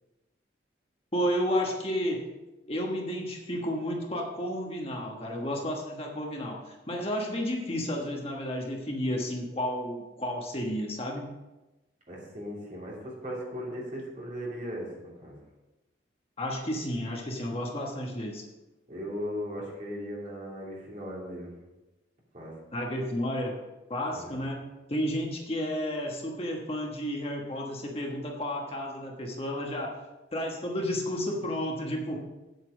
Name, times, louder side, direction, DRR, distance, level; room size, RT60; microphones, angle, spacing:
voice 1, 1.1-2.3 2.6-11.2 16.4-18.4 22.7-23.6 23.9-24.6 24.9-29.9 30.3-32.2, equal, 30° left, 0 dB, 1.2 m, -32 dB
voice 2, 12.1-15.4 18.9-21.5 22.3-22.5 24.1-24.3, equal, 40° right, -4 dB, 2.9 m, -37 dB
8.3 x 8.1 x 5.1 m, 1.1 s
head